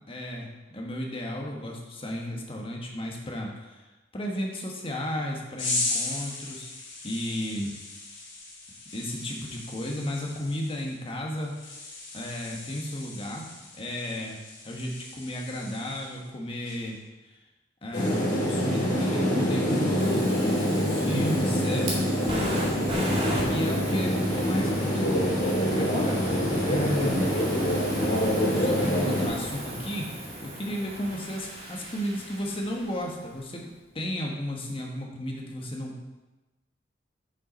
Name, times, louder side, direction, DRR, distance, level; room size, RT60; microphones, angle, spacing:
voice 1, 0.1-0.5 0.7-3.8 4.1-6.7 7.0-7.7 8.9-11.5 12.1-13.4 13.8-14.4 14.6-17.0 17.8-22.0 23.5-25.0 25.7-26.2 26.7-27.2 28.5-30.1 30.4-33.7 33.9-36.1, equal, 30° left, 0 dB, 1.3 m, -33 dB
sound 1, 5.6-16.3 16.6-17.0, left 2 dB, 80° left, 2.3 m, -37 dB
sound 2, 17.9-29.3, equal, 45° left, 3.1 m, -25 dB
Fire, 20.0-33.1, equal, 30° right, 2.0 m, -35 dB
7.2 x 5.7 x 5.2 m, 1.1 s
head